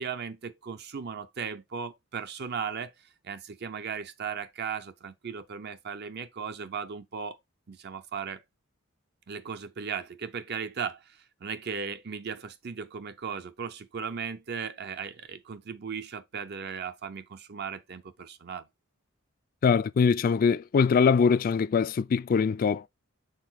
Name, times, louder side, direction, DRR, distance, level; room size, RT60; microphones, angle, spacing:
voice 1, 0.0-2.9 3.2-7.4 7.7-8.4 9.3-18.6, right 6 dB, 55° right, 0.6 m, -37 dB
voice 2, 19.6-22.9, left 5 dB, 45° left, 0.3 m, -23 dB
6.6 x 3.9 x 4.0 m
head